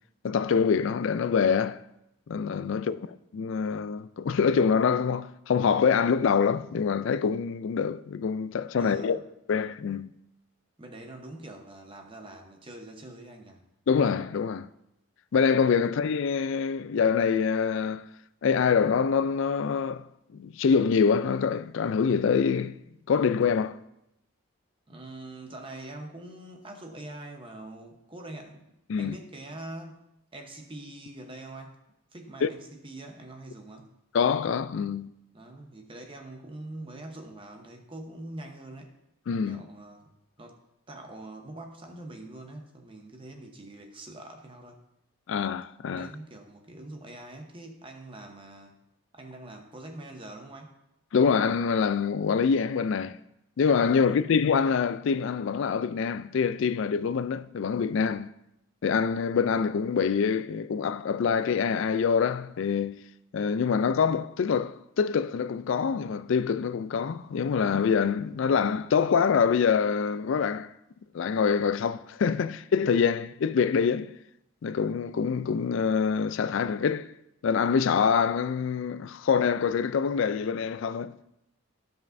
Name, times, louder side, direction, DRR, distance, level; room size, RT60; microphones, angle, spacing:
voice 1, 0.2-1.8 2.3-3.0 3.3-9.2 9.5-10.1 13.9-14.7 15.3-18.1 18.4-20.1 20.3-22.8 23.1-23.8 28.9-29.1 32.4-32.5 34.1-35.1 39.3-39.6 45.3-46.1 51.1-53.2 53.6-58.3 58.8-63.0 63.3-70.7 71.1-74.1 74.6-77.1 77.4-81.2, left 6 dB, 60° left, 0.3 m, -25 dB
voice 2, 8.8-9.2 10.8-13.6 24.9-28.7 29.0-30.1 30.3-31.8 32.1-33.9 35.3-39.0 39.5-40.1 40.4-40.6 40.9-44.8 46.0-48.8 49.1-50.8 54.0-54.2, right 2 dB, 25° right, 0.8 m, -44 dB
15.0 x 5.3 x 2.6 m
head